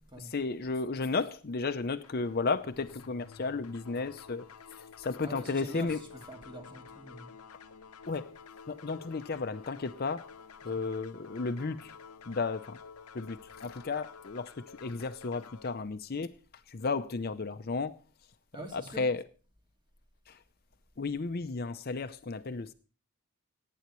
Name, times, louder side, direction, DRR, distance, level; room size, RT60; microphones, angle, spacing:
voice 1, 0.2-4.4 4.7-6.1 8.1-8.3 8.7-10.3 10.6-11.9 12.3-12.8 13.1-16.3 16.7-18.0 18.7-19.3 20.3-20.4 21.0-22.7, left 4 dB, 45° left, 0.6 m, -33 dB
sound 1, 2.0-15.7, left 6 dB, 85° left, 0.8 m, -51 dB
voice 2, 5.2-7.3 10.7-10.8 18.5-19.1, equal, 20° right, 2.2 m, -45 dB
18.5 x 9.4 x 3.1 m
head